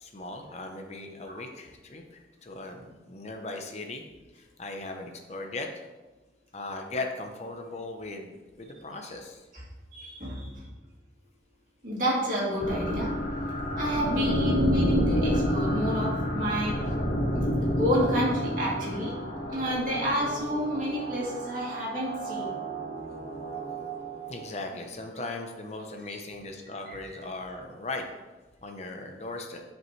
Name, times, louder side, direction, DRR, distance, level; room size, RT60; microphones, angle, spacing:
voice 1, 0.0-4.0 4.3-5.8 6.5-8.3 8.6-9.5 24.3-28.0 28.6-29.6, left 2 dB, 40° left, 4 dB, 0.7 m, -38 dB
voice 2, 9.9-10.6 11.8-13.1 13.8-16.8 17.3-17.5 17.8-19.2 19.5-22.5 26.1-26.2 26.9-27.0, equal, 50° right, -6 dB, 2.6 m, -29 dB
sound 1, 12.6-24.6, equal, 75° left, 2.1 m, -30 dB
11.0 x 5.3 x 3.2 m, 1.2 s
head